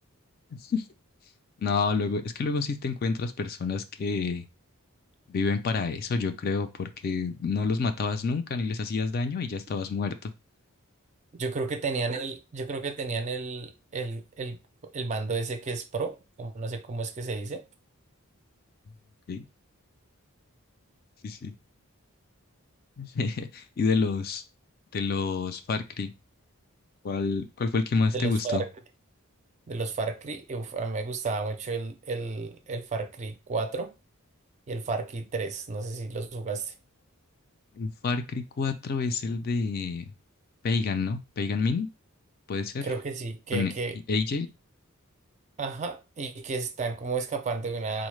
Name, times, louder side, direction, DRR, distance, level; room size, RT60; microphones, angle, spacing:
voice 1, 0.5-0.8 1.6-4.4 5.3-10.3 19.3-19.4 21.2-21.5 23.0-24.4 24.9-26.1 27.0-28.6 37.8-40.1 40.6-41.9 42.5-42.9 43.5-43.7 44.1-44.5, left 4 dB, 45° left, 0.3 m, -28 dB
voice 2, 11.4-14.6 14.9-17.6 28.1-28.7 29.7-33.9 34.7-36.7 42.8-44.0 45.6-48.1, right 4 dB, 30° right, 0.4 m, -32 dB
3.8 x 2.1 x 3.1 m
head